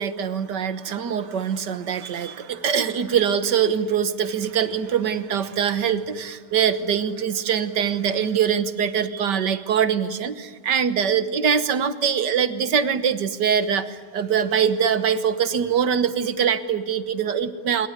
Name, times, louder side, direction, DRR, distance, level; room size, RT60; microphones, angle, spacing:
voice 1, 0.0-17.9, right 7 dB, 75° right, 12 dB, 1.8 m, -23 dB
26.5 x 23.5 x 9.7 m, 1.5 s
omnidirectional pair, 1.9 m